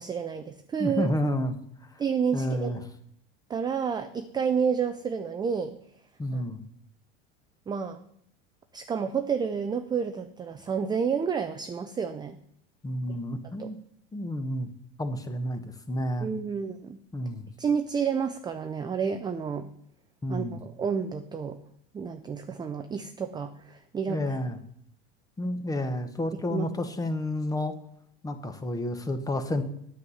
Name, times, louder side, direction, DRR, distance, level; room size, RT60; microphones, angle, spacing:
voice 1, 0.0-1.1 2.0-2.7 3.5-5.8 6.3-6.4 7.7-8.0 8.7-12.4 13.6-13.7 16.2-17.0 17.6-19.7 20.3-21.6 21.9-24.2 26.5-26.7, right 6 dB, 15° right, 7 dB, 0.4 m, -30 dB
voice 2, 0.8-1.5 1.9-2.0 2.3-2.8 6.2-6.6 12.8-13.8 14.1-14.7 15.0-16.3 17.1-17.5 20.2-20.6 24.1-24.6 25.4-27.7 28.2-29.6, left 1 dB, 10° left, 9 dB, 1.0 m, -30 dB
9.6 x 8.1 x 5.5 m, 0.68 s
supercardioid pair, 130°, 32 cm